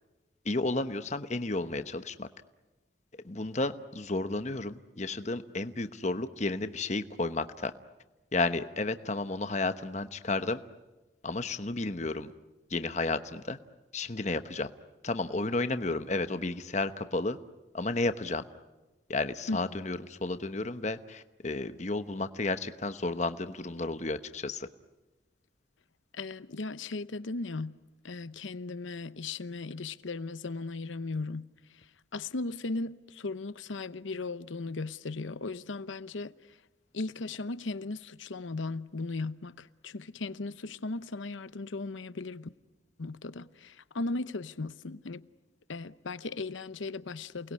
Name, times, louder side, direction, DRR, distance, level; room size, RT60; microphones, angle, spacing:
voice 1, 0.4-2.3 3.2-7.7 8.3-10.6 11.2-12.3 12.7-13.6 13.9-14.7 15.0-17.4 17.7-18.4 19.1-24.7, left 2 dB, 35° left, 1.0 m, -32 dB
voice 2, 26.1-27.8 28.0-36.6 36.9-42.5 43.0-45.3 45.7-47.5, left 3 dB, 80° left, 0.8 m, -37 dB
29.0 x 20.5 x 9.7 m
head